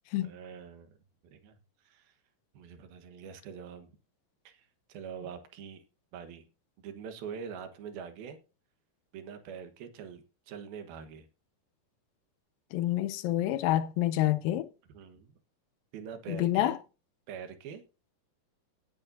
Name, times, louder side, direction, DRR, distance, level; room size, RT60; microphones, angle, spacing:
voice 1, 0.2-1.0 1.2-1.6 1.8-2.2 2.5-3.9 4.4-5.8 6.1-6.5 6.8-8.4 9.1-11.3 14.9-15.3 15.9-16.8 17.3-17.8, right 7 dB, 85° right, 3.2 m, -44 dB
voice 2, 12.7-14.7 16.3-16.8, left 14 dB, 80° left, 2.3 m, -28 dB
18.0 x 8.9 x 2.7 m
omnidirectional pair, 4.2 m